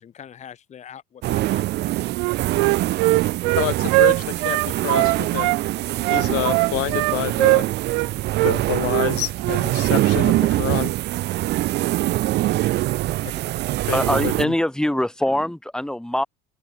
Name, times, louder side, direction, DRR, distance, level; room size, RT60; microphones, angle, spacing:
voice 1, 0.0-1.9 3.0-3.1 12.6-12.7 13.2-13.3, left 8 dB, 25° left, 2.2 m, -43 dB
sound 1, 1.2-14.4, right 16 dB, 35° right, 0.7 m, -24 dB
Wind instrument woodwind instrument, 2.1-5.6 6.0-8.1 8.3-8.5 8.9-9.1 9.4-9.6, right 38 dB, 90° right, 1.2 m, -20 dB
voice 2, 3.5-5.5 6.1-7.7 8.4-10.9 13.9-14.5, left 20 dB, 50° left, 2.5 m, -28 dB
voice 3, 13.8-16.2, left 1 dB, ahead, 4.6 m, -23 dB
cardioid pair, 180°, 29 cm